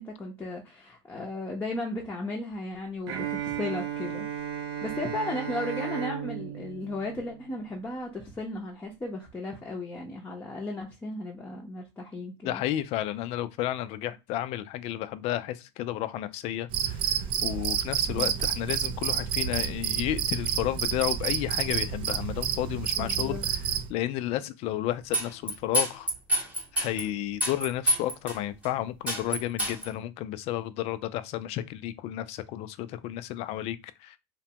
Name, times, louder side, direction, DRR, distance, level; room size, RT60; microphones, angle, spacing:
voice 1, 0.0-4.3 4.8-12.6 18.1-18.3 23.0-23.4, left 2 dB, 15° left, 0.6 m, -35 dB
Bowed string instrument, 3.1-7.9, right 9 dB, 85° right, 0.6 m, -35 dB
voice 2, 12.4-23.6 23.9-26.1 26.7-34.2, left 13 dB, 50° left, 0.4 m, -32 dB
Cricket, 16.7-23.9, right 9 dB, 45° right, 0.3 m, -29 dB
sound 1, 25.1-27.0 27.4-28.4 28.6-28.7 29.1-29.9, equal, 10° right, 1.0 m, -27 dB
2.8 x 2.1 x 2.8 m
supercardioid pair, 120°, 13 cm